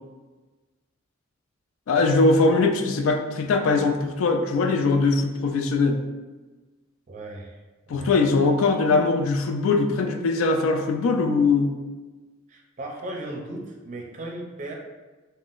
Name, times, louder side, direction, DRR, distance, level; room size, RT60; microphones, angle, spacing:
voice 1, 1.9-6.0 7.9-11.7, left 3 dB, 70° left, 5 dB, 0.3 m, -21 dB
voice 2, 7.1-7.6 7.9-8.1 12.5-14.7, right 1 dB, 35° right, 0 dB, 0.5 m, -36 dB
3.6 x 2.1 x 2.4 m, 1.2 s
head